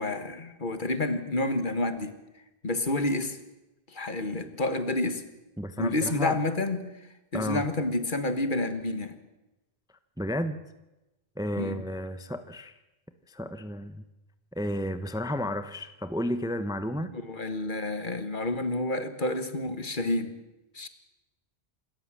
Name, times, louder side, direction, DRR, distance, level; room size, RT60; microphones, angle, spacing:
voice 1, 0.0-2.2 2.6-3.4 3.9-5.2 5.8-6.9 7.3-9.2 11.6-11.8 17.1-20.3 20.7-20.9, left 2 dB, 50° left, 10 dB, 1.7 m, -29 dB
voice 2, 5.6-6.4 7.3-7.7 10.2-10.6 11.4-12.7 13.3-14.0 14.6-17.1, equal, 5° right, 11 dB, 0.8 m, -32 dB
26.5 x 13.5 x 7.5 m, 0.99 s
omnidirectional pair, 1.1 m